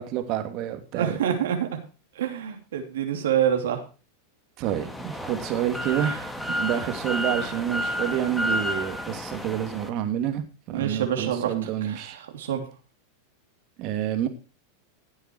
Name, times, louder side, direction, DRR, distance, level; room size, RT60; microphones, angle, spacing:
voice 1, 0.0-1.2 4.6-12.2 13.8-14.3, right 11 dB, 50° right, 7 dB, 2.8 m, -28 dB
voice 2, 0.9-1.7 2.2-3.8 10.7-11.5 11.8-12.6, right 9 dB, 80° right, 4 dB, 3.0 m, -26 dB
sound 1, 4.6-9.9, left 1 dB, 5° left, 2.3 m, -31 dB
16.0 x 8.0 x 4.7 m, 0.34 s
hypercardioid pair, 105°, 0 cm